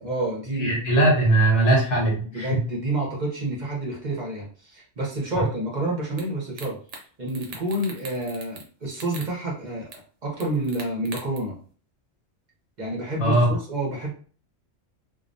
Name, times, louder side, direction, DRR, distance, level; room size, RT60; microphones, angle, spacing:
voice 1, 0.0-0.8 2.3-6.8 7.2-9.9 10.2-11.5 12.8-14.1, right 2 dB, 45° right, -3 dB, 0.8 m, -29 dB
voice 2, 0.6-2.6 13.2-13.6, right 2 dB, 75° left, 0 dB, 1.2 m, -20 dB
sound 1, 6.2-6.3 6.6-7.0 7.3-8.7 8.9-9.3 9.9-10.0 10.4-11.4, right 4 dB, 80° right, 0.9 m, -40 dB
2.3 x 2.1 x 2.6 m, 0.42 s
omnidirectional pair, 1.2 m